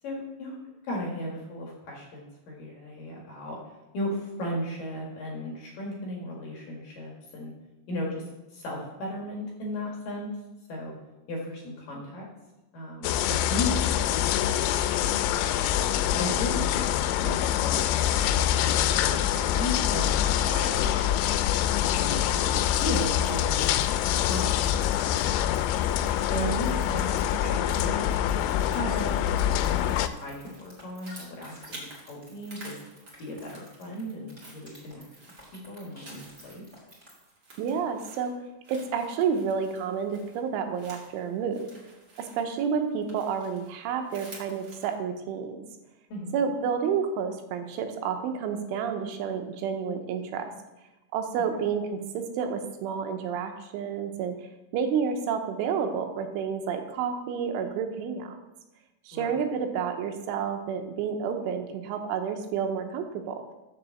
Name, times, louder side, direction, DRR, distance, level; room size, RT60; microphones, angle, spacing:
voice 1, 0.0-0.5 0.8-3.6 3.9-7.5 7.9-8.2 8.5-10.3 10.7-10.9 11.3-12.3 12.7-15.5 16.1-17.9 18.1-18.3 18.6-21.2 21.9-25.5 26.3-32.8 33.2-35.1 35.7-36.6 46.1-46.4 59.1-59.3, left 1 dB, 55° left, -2 dB, 2.8 m, -36 dB
sound 1, 13.0-30.1, left 11 dB, 85° left, 3.0 m, -25 dB
sound 2, 22.6-37.3, equal, 10° right, 2.0 m, -51 dB
sound 3, 28.7-32.0 32.3-33.9 34.2-44.9, right 1 dB, 40° right, 1.4 m, -50 dB
voice 2, 37.6-38.3 38.7-41.7 42.2-45.6 46.3-50.5 51.1-54.3 54.7-58.3 59.1-63.4, right 6 dB, 85° right, 5 dB, 3.4 m, -30 dB
7.3 x 6.9 x 7.0 m, 1.0 s
omnidirectional pair, 5.5 m